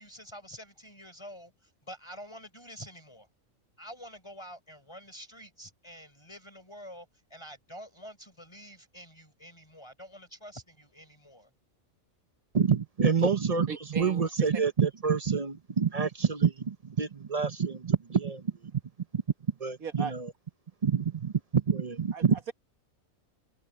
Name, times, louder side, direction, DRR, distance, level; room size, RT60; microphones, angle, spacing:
voice 1, 0.0-3.3 3.8-11.5, equal, 20° left, 5.7 m, -47 dB
voice 2, 12.5-18.4 18.7-18.8 19.1-19.2 19.6-20.3 20.8-22.4, right 6 dB, 35° right, 0.6 m, -27 dB
voice 3, 13.7-14.5 19.8-20.1 22.1-22.5, right 6 dB, 90° right, 1.9 m, -37 dB
omnidirectional pair, 1.4 m